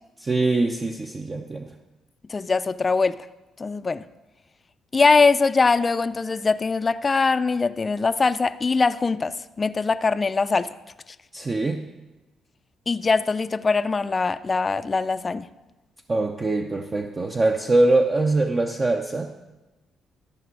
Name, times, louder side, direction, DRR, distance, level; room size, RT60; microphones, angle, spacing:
voice 1, 0.2-1.7 11.3-11.9 16.1-19.3, right 2 dB, 30° right, 4 dB, 0.6 m, -23 dB
voice 2, 2.3-3.2 3.6-4.1 4.9-10.7 12.9-15.5, left 4 dB, 30° left, 14 dB, 0.4 m, -22 dB
13.5 x 6.0 x 4.7 m, 1.1 s
cardioid pair, 90°, 0 cm